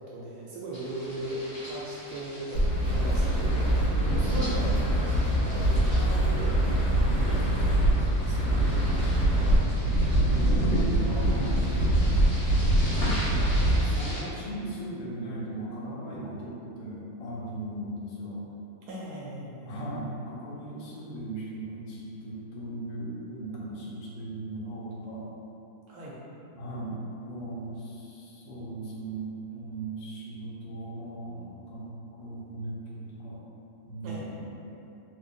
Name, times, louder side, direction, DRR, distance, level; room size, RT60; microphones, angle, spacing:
voice 1, 0.1-3.6 4.1-4.8 5.4-6.8 7.1-8.3 11.6-11.7 18.9-19.7 25.9-26.2 34.0-34.3, right 1 dB, 70° right, -6 dB, 1.0 m, -38 dB
sound 1, 0.7-14.2, equal, 35° left, 1.0 m, -42 dB
sound 2, 2.5-13.8, right 1 dB, 55° left, 1.1 m, -24 dB
voice 2, 10.2-11.7 13.8-18.4 19.6-25.2 26.5-33.4 33.8-34.8, right 1 dB, 75° left, -6 dB, 1.4 m, -38 dB
3.3 x 2.2 x 3.7 m, 2.9 s
omnidirectional pair, 2.0 m